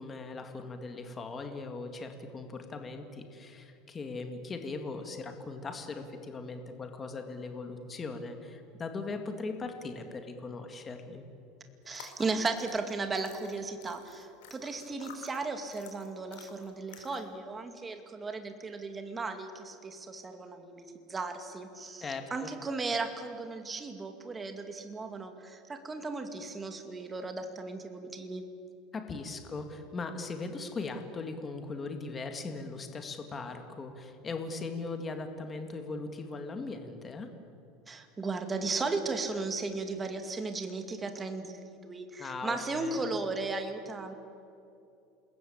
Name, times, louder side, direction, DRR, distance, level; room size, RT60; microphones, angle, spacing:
voice 1, 0.0-11.3 22.0-22.5 28.9-37.3 42.2-43.0, left 3 dB, 20° left, 6 dB, 2.0 m, -39 dB
sound 1, 11.8-17.4, left 8 dB, 90° left, 4.2 m, -52 dB
voice 2, 11.9-28.4 37.9-44.1, right 3 dB, 15° right, 6 dB, 2.3 m, -36 dB
28.0 x 21.0 x 8.8 m, 2.6 s
cardioid pair, 160°, 0 cm